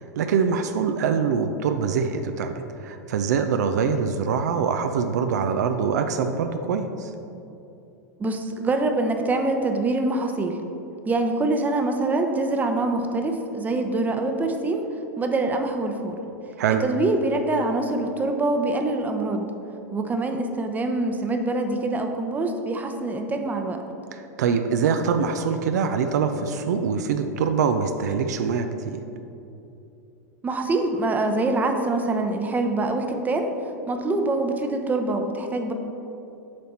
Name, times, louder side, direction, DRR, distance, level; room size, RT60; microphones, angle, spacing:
voice 1, 0.0-7.1 16.6-16.8 24.1-29.0, right 6 dB, 70° right, 7 dB, 0.4 m, -24 dB
voice 2, 8.2-10.6 11.1-14.8 15.2-16.2 16.8-19.5 19.9-23.8 30.4-33.5 33.9-35.7, right 2 dB, 15° right, 5 dB, 0.7 m, -25 dB
7.5 x 4.2 x 4.2 m, 2.8 s
hypercardioid pair, 95°, 9 cm